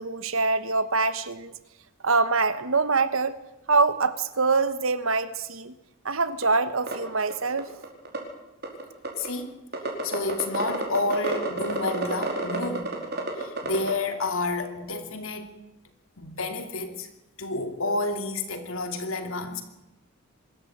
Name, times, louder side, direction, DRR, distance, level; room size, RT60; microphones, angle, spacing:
voice 1, 0.0-1.5 2.0-3.4 3.7-5.7 6.0-7.7, right 4 dB, 75° right, 13 dB, 1.4 m, -24 dB
sound 1, 6.4-6.5 6.9-7.0 7.3-7.4 7.6-8.2 8.6-9.3 9.7-13.9, right 2 dB, 50° right, 4.8 m, -29 dB
voice 2, 9.2-9.5 10.0-13.0 13.4-15.5 16.2-17.1 17.4-19.6, left 3 dB, 75° left, 7 dB, 2.7 m, -30 dB
24.0 x 13.5 x 8.8 m, 0.95 s
head